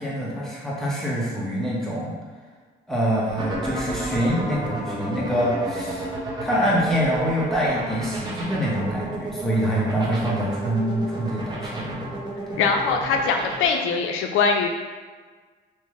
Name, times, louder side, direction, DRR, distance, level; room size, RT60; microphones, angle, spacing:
voice 1, 0.0-2.1 2.9-6.1 6.4-12.0 12.5-12.6, equal, ahead, -7 dB, 1.3 m, -25 dB
sound 1, 3.3-13.7, right 2 dB, 20° right, 1.1 m, -31 dB
voice 2, 12.6-14.7, left 5 dB, 90° left, 4 dB, 0.4 m, -22 dB
3.4 x 3.0 x 3.2 m, 1.4 s
cardioid pair, 90°, 20 cm